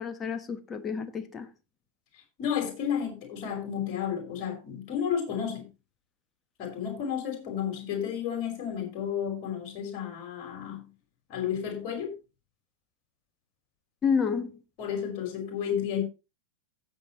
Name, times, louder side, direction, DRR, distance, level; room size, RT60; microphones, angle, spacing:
voice 1, 0.0-1.5 14.0-14.6, left 6 dB, 20° left, 1.3 m, -29 dB
voice 2, 2.4-5.7 6.6-10.9 11.3-12.1 14.8-16.0, left 8 dB, 40° left, 5.1 m, -32 dB
16.0 x 7.5 x 3.1 m
figure-of-eight pair, 90°, 0 cm